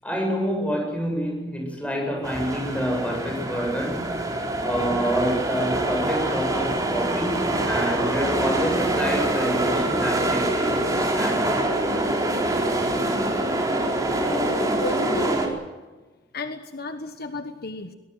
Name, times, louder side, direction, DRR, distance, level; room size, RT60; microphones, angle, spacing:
voice 1, 0.0-4.3 4.6-11.6, equal, 5° left, 2 dB, 7.7 m, -28 dB
sound 1, 2.2-15.5, right 1 dB, 20° right, 4.3 m, -25 dB
voice 2, 14.2-15.4 16.3-17.9, left 2 dB, 55° left, 8 dB, 1.3 m, -33 dB
22.5 x 20.0 x 7.9 m, 1.2 s
head